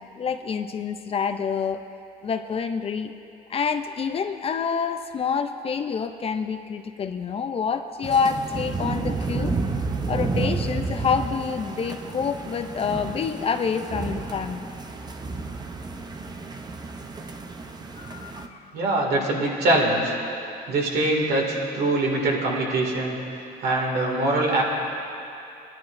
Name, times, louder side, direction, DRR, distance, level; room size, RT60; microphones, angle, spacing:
voice 1, 0.0-1.8 2.2-3.1 3.5-9.6 10.1-14.7 18.0-18.6, left 6 dB, 35° left, 7 dB, 0.5 m, -27 dB
sound 1, 8.0-18.5, right 4 dB, 25° right, 0.7 m, -31 dB
voice 2, 18.7-20.1 20.7-23.2 23.6-24.6, right 2 dB, 70° right, -2 dB, 2.4 m, -23 dB
18.5 x 11.5 x 2.6 m, 2.8 s
cardioid pair, 110°, 17 cm